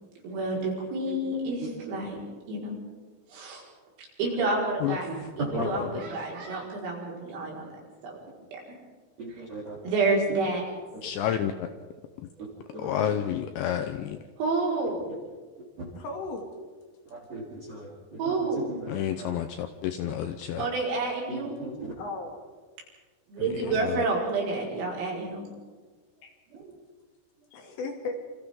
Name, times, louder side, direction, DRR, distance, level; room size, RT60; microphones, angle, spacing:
voice 1, 0.2-2.2 2.5-2.7 3.3-3.6 4.2-5.1 5.4-7.7 8.0-8.1 9.8-10.6 12.9-13.2 14.4-15.1 18.2-18.6 20.6-21.6 23.3-25.5 26.5-26.8, right 3 dB, 80° right, -3 dB, 7.6 m, -29 dB
voice 2, 1.1-1.5 4.9-5.7 9.2-9.8 10.9-11.0 12.7-13.1 15.8-15.9 17.1-19.3 20.0-20.1 21.3-21.9 23.4-23.7, right 2 dB, 35° right, -4 dB, 4.1 m, -37 dB
voice 3, 5.5-5.9 11.0-11.7 12.2-12.3 12.8-14.2 18.9-20.7 23.7-24.0, left 10 dB, 80° left, 7 dB, 2.7 m, -30 dB
voice 4, 15.9-16.5 22.0-22.4 23.6-24.7 26.2-26.3 27.5-28.2, left 3 dB, 60° left, 2 dB, 4.5 m, -38 dB
28.0 x 27.0 x 3.8 m, 1.4 s
omnidirectional pair, 6.0 m